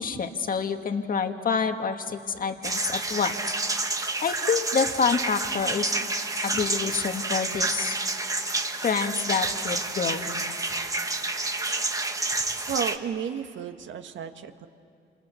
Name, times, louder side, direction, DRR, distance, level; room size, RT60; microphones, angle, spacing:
voice 1, 0.0-3.4 4.2-5.9 6.4-8.0 8.8-10.5, left 6 dB, 45° left, 6 dB, 1.8 m, -27 dB
sound 1, 2.6-13.0, right 2 dB, 15° right, 1.5 m, -29 dB
voice 2, 12.7-14.7, right 7 dB, 70° right, 7 dB, 1.7 m, -32 dB
28.5 x 27.5 x 7.0 m, 2.5 s
cardioid pair, 90°, 20 cm